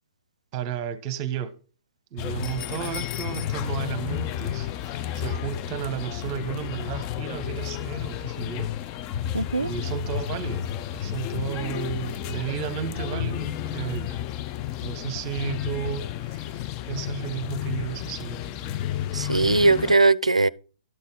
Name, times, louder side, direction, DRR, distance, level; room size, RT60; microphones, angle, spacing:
voice 1, 0.5-1.6 2.1-8.8 9.6-14.2 14.8-18.7, right 10 dB, 30° right, 1.0 m, -33 dB
sound 1, 2.2-19.9, left 11 dB, 30° left, 0.4 m, -31 dB
voice 2, 9.3-9.7 19.1-20.5, right 3 dB, 80° right, 0.4 m, -20 dB
12.5 x 4.1 x 5.6 m
figure-of-eight pair, 120°, 3 cm